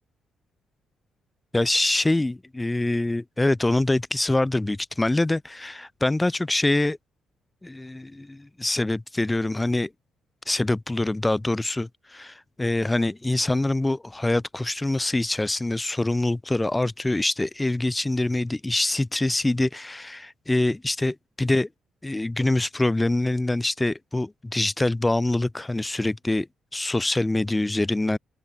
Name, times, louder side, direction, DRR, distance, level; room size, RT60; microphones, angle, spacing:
voice 1, 1.5-7.0 7.6-9.9 10.5-21.7 22.0-26.5 26.7-28.2, left 2 dB, 15° left, 3.7 m, -25 dB
open air
cardioid pair, 90°, 0 cm